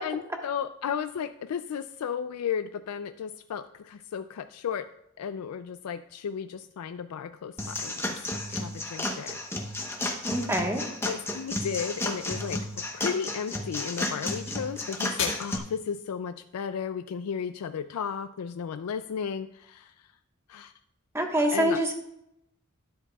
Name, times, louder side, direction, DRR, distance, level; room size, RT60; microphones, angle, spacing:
voice 1, 0.0-4.9 5.2-8.2 8.5-9.4 11.0-20.1 20.5-20.7 21.5-21.8, left 7 dB, 85° left, 10 dB, 0.4 m, -34 dB
sound 1, 7.5-18.2, left 6 dB, 60° left, 1.6 m, -44 dB
sound 2, 7.6-15.6, left 1 dB, 10° left, 0.9 m, -33 dB
voice 2, 10.2-10.8 21.1-21.9, right 1 dB, 10° right, 2 dB, 1.3 m, -25 dB
12.0 x 10.0 x 2.3 m, 0.80 s
head